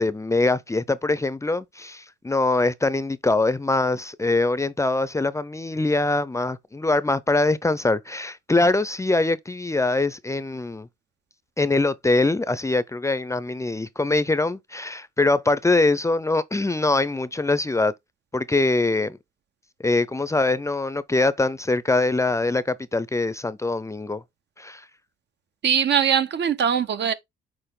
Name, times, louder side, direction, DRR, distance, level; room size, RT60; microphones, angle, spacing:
voice 1, 0.0-10.9 11.6-17.9 18.3-19.2 19.8-24.2 24.6-24.8, left 2 dB, 15° left, 0.5 m, -23 dB
voice 2, 25.6-27.1, right 8 dB, 60° right, 1.0 m, -21 dB
6.8 x 4.5 x 3.7 m
cardioid pair, 90°, 20 cm